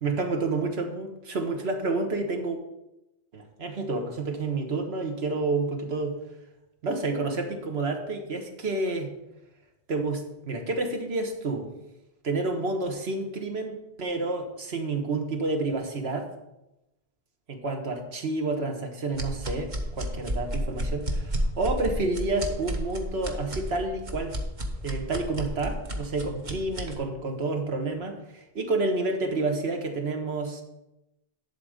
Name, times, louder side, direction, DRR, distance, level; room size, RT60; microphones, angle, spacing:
voice 1, 0.0-2.6 3.3-6.1 6.8-9.1 9.9-11.7 12.2-16.3 17.5-24.4 24.8-30.6, right 3 dB, 85° right, 4 dB, 1.5 m, -29 dB
sound 1, 19.1-26.9, equal, 45° right, 1.2 m, -32 dB
11.0 x 4.0 x 6.5 m, 0.93 s
omnidirectional pair, 1.1 m